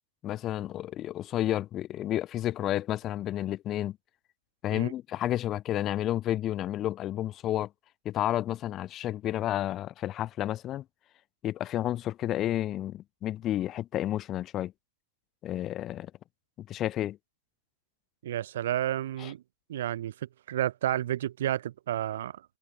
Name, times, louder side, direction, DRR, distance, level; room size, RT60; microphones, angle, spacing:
voice 1, 0.2-4.0 4.6-7.7 8.0-10.8 11.4-14.7 15.4-16.1 16.6-17.2 19.2-19.3, left 13 dB, 30° left, 0.8 m, -31 dB
voice 2, 18.2-19.4 19.7-22.4, right 12 dB, 60° right, 3.1 m, -31 dB
figure-of-eight pair, 90°, 0 cm